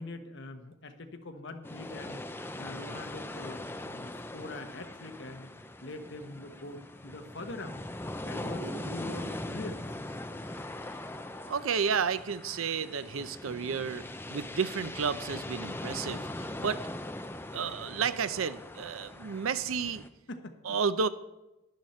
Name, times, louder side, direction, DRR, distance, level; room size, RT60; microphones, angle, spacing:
voice 1, 0.0-2.2 2.6-5.5 5.8-7.8 8.2-9.8 15.6-16.2 20.3-20.6, left 2 dB, 60° left, 6 dB, 1.1 m, -43 dB
sound 1, 1.6-20.1, left 1 dB, 10° left, 0.5 m, -41 dB
voice 2, 8.4-9.0 11.5-14.0 14.3-16.9 17.5-20.0 20.6-21.1, right 6 dB, 85° right, 14 dB, 0.6 m, -32 dB
12.0 x 10.5 x 4.3 m, 0.99 s
head